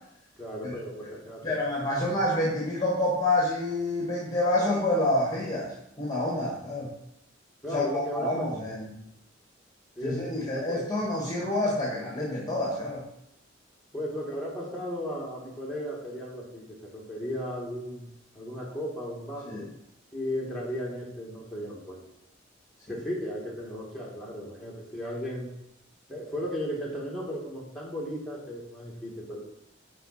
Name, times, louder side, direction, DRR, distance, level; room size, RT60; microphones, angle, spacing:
voice 1, 0.4-1.6 7.6-8.5 10.0-10.8 13.9-18.1 18.3-19.6 20.1-22.0 22.9-25.5 26.1-29.5, equal, ahead, -4 dB, 2.1 m, -35 dB
voice 2, 1.4-6.9 7.7-9.0 10.0-13.0 19.4-19.7 22.9-23.0, left 1 dB, 20° left, -3 dB, 1.6 m, -28 dB
9.7 x 4.9 x 4.3 m, 0.79 s
head